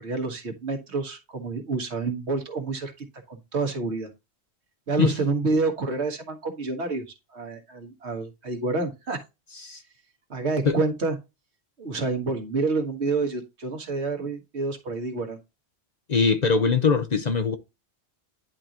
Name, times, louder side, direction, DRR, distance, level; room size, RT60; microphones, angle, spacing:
voice 1, 0.0-4.1 4.9-7.1 7.3-9.2 10.3-11.1 11.8-15.4, right 3 dB, 80° right, 1.7 m, -28 dB
voice 2, 16.1-17.6, left 5 dB, 45° left, 0.7 m, -22 dB
10.5 x 3.8 x 2.9 m
omnidirectional pair, 1.1 m